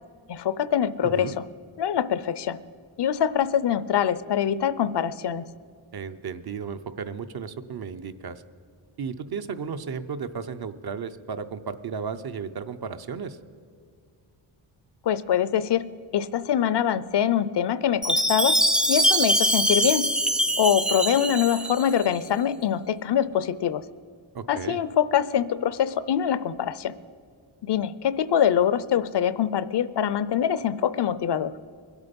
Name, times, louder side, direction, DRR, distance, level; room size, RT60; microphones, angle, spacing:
voice 1, 0.3-1.4 1.8-2.6 3.0-5.4 15.0-15.9 16.1-18.6 18.9-20.0 20.6-23.8 24.5-26.9 27.6-31.5, left 9 dB, 55° left, 16 dB, 0.6 m, -24 dB
voice 2, 1.0-1.4 5.9-8.4 9.0-13.4 24.3-24.8, right 6 dB, 50° right, 10 dB, 0.7 m, -34 dB
Chime, 18.0-22.2, right 1 dB, ahead, 0.5 m, -23 dB
22.0 x 8.2 x 5.3 m, 2.2 s
wide cardioid pair, 85°, 49 cm